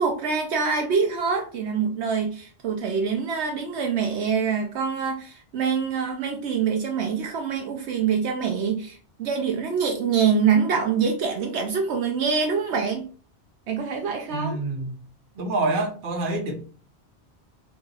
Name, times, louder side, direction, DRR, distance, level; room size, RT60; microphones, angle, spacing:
voice 1, 0.0-13.1 13.7-14.6, right 6 dB, 75° right, 3 dB, 0.9 m, -25 dB
voice 2, 14.3-14.9 15.4-16.7, right 2 dB, 50° right, 1 dB, 1.0 m, -27 dB
2.9 x 2.6 x 3.8 m, 0.40 s
omnidirectional pair, 1.2 m